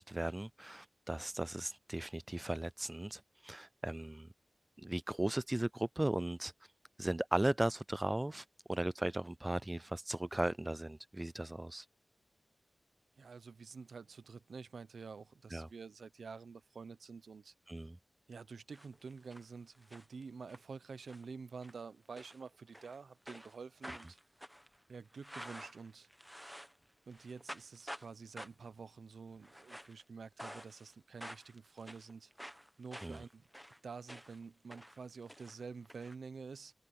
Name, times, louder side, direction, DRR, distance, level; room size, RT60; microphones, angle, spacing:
voice 1, 0.0-4.3 4.8-6.5 7.0-11.9 15.5-15.7 17.7-18.0 33.0-33.2, right 1 dB, 15° right, 0.3 m, -37 dB
voice 2, 13.2-17.5 18.3-24.2 24.9-26.1 27.1-32.3 32.8-33.4 33.8-36.7, right 5 dB, 90° right, 0.8 m, -49 dB
sound 1, 18.7-19.5 19.7-20.6 21.0-21.3 21.6-21.8 22.2-23.0 23.3-26.8 27.1-28.1 28.4-28.7 29.4-30.0 30.4-30.9 31.2-34.4 34.7-36.1, equal, ahead, 1.3 m, -50 dB
wide cardioid pair, 100°, 0 cm